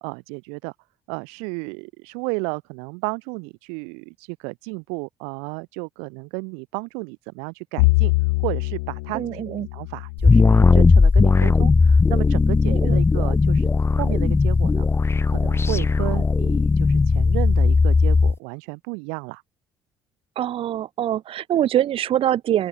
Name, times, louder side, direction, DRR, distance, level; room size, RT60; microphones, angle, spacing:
voice 1, 0.0-0.7 1.1-8.1 8.4-9.4 9.7-13.7 14.0-14.9 15.3-19.4, right 37 dB, 75° right, 2.8 m, -32 dB
Bowed string instrument, 7.8-12.2, left 27 dB, 80° left, 1.0 m, -25 dB
voice 2, 9.1-9.7 12.7-13.0 20.4-22.7, right 11 dB, 60° right, 2.6 m, -24 dB
sound 1, 10.2-18.3, left 4 dB, 25° left, 0.8 m, -17 dB
open air
hypercardioid pair, 55°, 11 cm